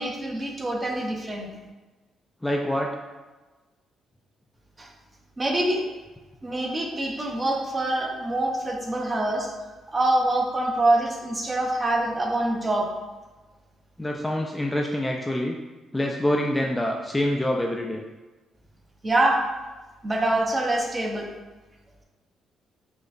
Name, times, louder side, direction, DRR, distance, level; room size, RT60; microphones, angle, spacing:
voice 1, 0.0-1.5 4.8-4.9 5.4-5.8 6.4-9.5 9.9-12.9 19.0-19.4 20.0-21.3, right 1 dB, 25° right, 0 dB, 0.7 m, -25 dB
voice 2, 2.4-2.9 14.0-15.6 15.9-18.0, left 1 dB, 10° left, 0 dB, 0.3 m, -26 dB
5.0 x 2.1 x 2.5 m, 1.2 s
cardioid pair, 90°, 0 cm